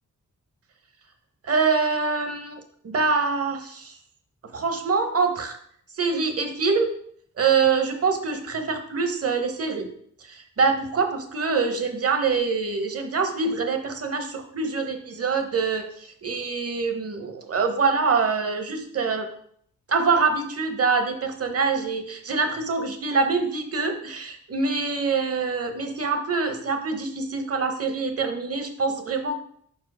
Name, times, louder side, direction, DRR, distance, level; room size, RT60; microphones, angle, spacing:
voice 1, 1.4-3.9 4.5-5.6 6.0-6.9 7.4-9.9 10.3-19.3 19.9-29.4, right 4 dB, 50° right, 6 dB, 1.0 m, -25 dB
5.6 x 4.7 x 4.8 m, 0.63 s
wide cardioid pair, 110°, 31 cm